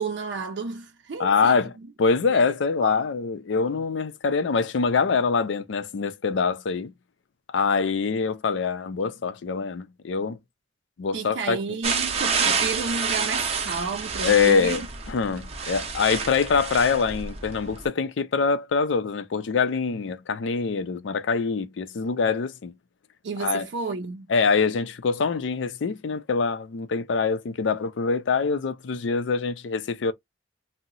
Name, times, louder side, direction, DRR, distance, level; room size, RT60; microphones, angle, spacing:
voice 1, 0.0-1.6 2.3-2.5 2.8-3.0 11.1-14.9 23.2-24.3, right 4 dB, 75° right, 0.5 m, -32 dB
voice 2, 1.2-1.7 2.0-6.9 7.5-10.4 11.0-11.6 12.5-12.6 14.2-22.7 23.4-23.7 24.3-30.1, left 5 dB, 85° left, 0.4 m, -24 dB
sound 1, 11.8-17.9, right 5 dB, 35° right, 0.6 m, -28 dB
2.7 x 2.0 x 3.8 m
head